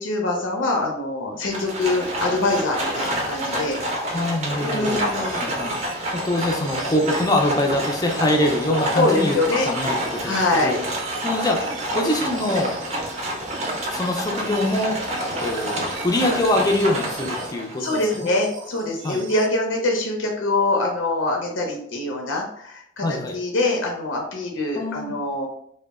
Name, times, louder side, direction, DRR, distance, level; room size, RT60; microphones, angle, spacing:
voice 1, 0.0-3.8 4.6-5.5 8.9-9.7 10.2-10.7 17.8-23.1 23.3-25.5, left 2 dB, 80° left, 1 dB, 0.5 m, -24 dB
Livestock farm animals working animals, 1.4-17.8, right 1 dB, 35° right, 0.6 m, -28 dB
voice 2, 3.9-5.0 5.3-9.4 9.7-10.8 11.2-11.6 11.9-12.7 13.9-15.0 15.4-18.3 19.0-19.2 23.0-23.4 24.7-25.1, left 1 dB, 20° left, 2 dB, 0.4 m, -24 dB
sound 1, 4.6-19.5, right 4 dB, 80° right, 0.4 m, -40 dB
2.1 x 2.0 x 3.4 m, 0.67 s
head